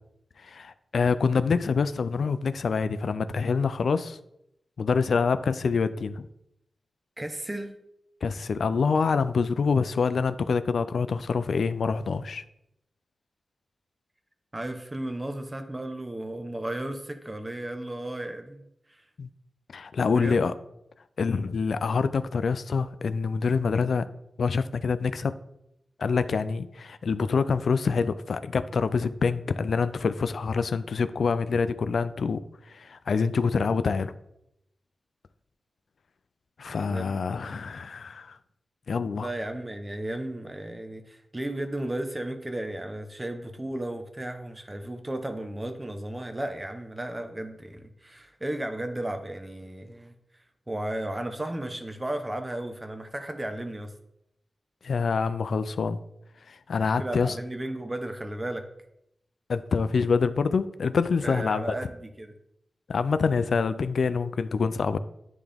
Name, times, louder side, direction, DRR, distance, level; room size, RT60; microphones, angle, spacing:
voice 1, 0.4-4.2 4.8-6.3 8.2-12.4 19.2-19.3 19.7-20.5 21.2-24.1 24.4-25.3 26.0-34.1 36.6-38.4 38.9-39.3 54.8-56.0 56.5-57.4 59.5-61.7 62.9-65.0, left 5 dB, 70° left, 12 dB, 0.3 m, -26 dB
voice 2, 7.2-7.8 14.5-18.6 20.1-20.5 36.6-37.6 39.2-50.1 50.7-53.9 57.0-58.7 61.2-62.3, right 1 dB, 20° right, 6 dB, 0.9 m, -34 dB
10.0 x 3.5 x 3.4 m, 0.79 s
cardioid pair, 75°, 0 cm